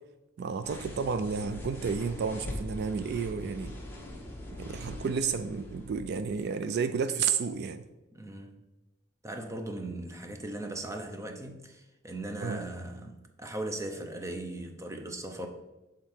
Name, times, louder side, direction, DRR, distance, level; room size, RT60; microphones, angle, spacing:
voice 1, 0.4-3.7 4.6-7.8 12.4-12.6, right 6 dB, 55° right, 0.3 m, -31 dB
sound 1, 0.6-6.4, left 1 dB, 10° left, 1.0 m, -42 dB
voice 2, 8.1-8.6 9.2-15.5, right 1 dB, 15° right, 0.6 m, -38 dB
7.2 x 3.7 x 4.4 m
head